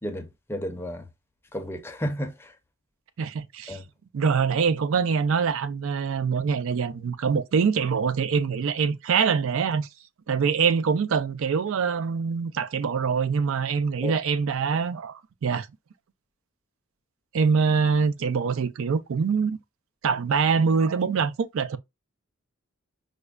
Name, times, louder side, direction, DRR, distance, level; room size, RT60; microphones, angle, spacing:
voice 1, 0.0-1.1 1.5-2.5 3.7-3.9 14.0-14.1, equal, 10° left, 0.6 m, -32 dB
voice 2, 3.2-3.8 4.1-9.9 10.3-15.7 17.3-19.6 20.0-21.8, right 5 dB, 70° right, 0.4 m, -24 dB
5.0 x 2.1 x 2.2 m
head